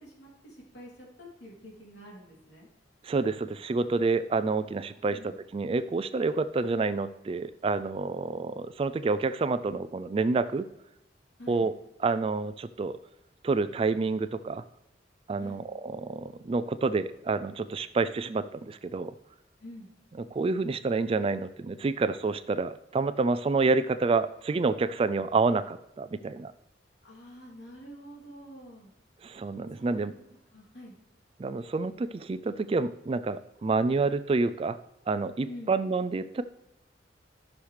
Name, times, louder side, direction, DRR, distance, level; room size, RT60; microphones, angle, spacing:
voice 1, 0.0-2.7 5.1-5.4 11.4-11.7 15.4-15.7 19.6-19.9 27.0-28.9 29.7-30.1 30.5-31.0 35.4-35.8, equal, 70° left, -3 dB, 2.9 m, -47 dB
voice 2, 3.0-10.7 11.5-11.8 12.0-13.0 13.4-14.6 15.3-19.1 20.3-26.5 29.2-30.1 31.4-34.8 35.1-36.4, right 3 dB, 30° right, 13 dB, 0.3 m, -28 dB
13.5 x 6.4 x 3.3 m, 0.88 s
head